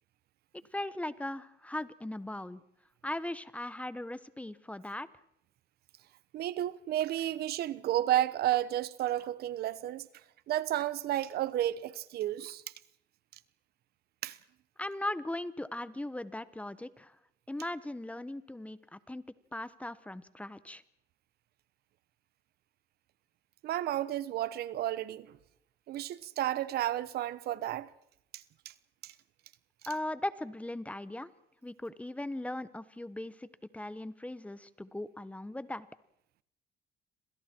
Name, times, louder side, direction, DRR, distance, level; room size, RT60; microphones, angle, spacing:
voice 1, 0.7-2.6 3.0-5.1 14.8-17.2 17.5-19.2 19.5-20.8 29.9-31.3 31.6-33.5 33.7-35.9, left 1 dB, 10° left, 1.1 m, -38 dB
voice 2, 6.3-10.1 10.5-12.6 14.2-14.4 23.6-25.4 25.9-27.9 28.3-28.7 29.0-29.1, right 13 dB, 70° right, 1.1 m, -32 dB
28.5 x 26.5 x 4.5 m
cardioid pair, 110°, 17 cm